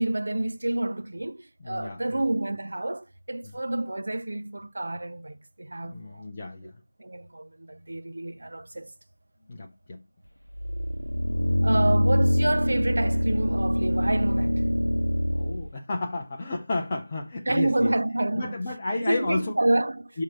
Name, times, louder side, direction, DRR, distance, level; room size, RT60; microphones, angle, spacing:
voice 1, 0.0-6.2 6.6-6.7 7.0-8.9 11.6-14.6 17.5-18.6 19.0-20.2, right 1 dB, 40° right, 0.5 m, -28 dB
voice 2, 1.6-2.2 3.4-3.5 5.8-6.8 9.5-10.0 15.3-17.9 18.4-19.5 20.1-20.2, left 2 dB, 15° left, 0.5 m, -32 dB
sound 1, 10.6-15.7, equal, 85° left, 0.7 m, -24 dB
5.9 x 3.6 x 5.8 m
figure-of-eight pair, 170°, 0 cm